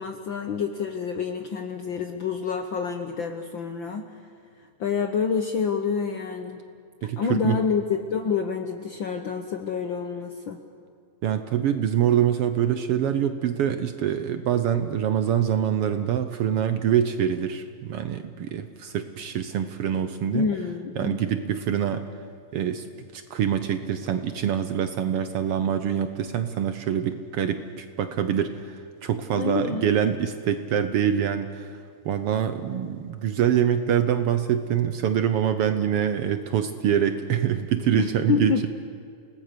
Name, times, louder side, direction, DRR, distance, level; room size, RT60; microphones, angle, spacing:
voice 1, 0.0-6.6 7.0-10.6 20.3-21.2 29.4-30.0 37.9-38.7, left 6 dB, 65° left, 6 dB, 1.2 m, -28 dB
voice 2, 7.0-7.6 11.2-20.5 21.0-22.1 22.5-22.9 23.1-38.7, right 9 dB, 65° right, 9 dB, 1.5 m, -25 dB
30.0 x 18.5 x 6.8 m, 2.4 s
omnidirectional pair, 3.3 m